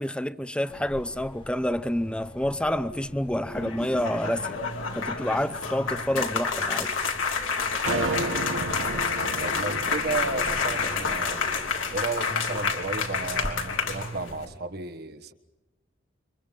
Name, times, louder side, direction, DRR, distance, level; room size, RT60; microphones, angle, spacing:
voice 1, 0.0-4.6 4.9-6.9, left 1 dB, 5° left, 0.7 m, -28 dB
sound 1, 0.7-14.6, right 1 dB, 25° left, 1.8 m, -42 dB
sound 2, 3.4-14.4, left 5 dB, 80° left, 3.2 m, -29 dB
sound 3, 7.9-12.3, right 3 dB, 80° right, 1.4 m, -33 dB
voice 2, 9.4-11.4 11.9-15.3, right 3 dB, 50° right, 1.4 m, -34 dB
29.5 x 25.0 x 5.4 m
head